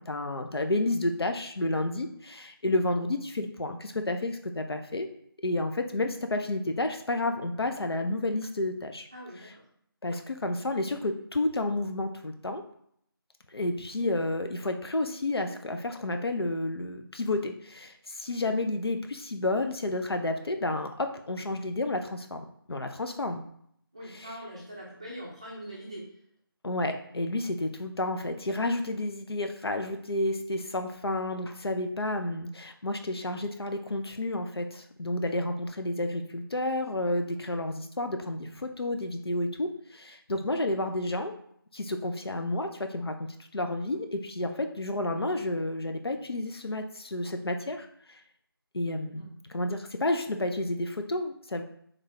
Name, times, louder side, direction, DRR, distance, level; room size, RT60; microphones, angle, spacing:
voice 1, 0.0-5.1 5.4-9.1 9.4-9.5 10.0-12.6 13.5-22.4 22.7-23.4 24.1-24.4 26.6-41.3 41.7-48.2 48.7-51.6, left 2 dB, 85° left, 6 dB, 0.5 m, -31 dB
voice 2, 9.1-9.5 23.9-26.1 44.4-44.6 49.1-49.3, equal, 15° right, -5 dB, 0.5 m, -43 dB
3.2 x 2.3 x 3.8 m, 0.67 s
figure-of-eight pair, 165°, 13 cm